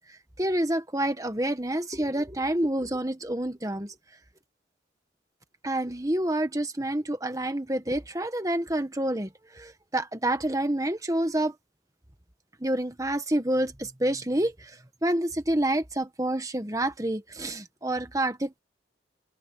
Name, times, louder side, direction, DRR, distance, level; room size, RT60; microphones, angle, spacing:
voice 1, 0.4-3.9 5.6-11.5 12.6-18.6, right 1 dB, 20° right, 1.4 m, -28 dB
open air
head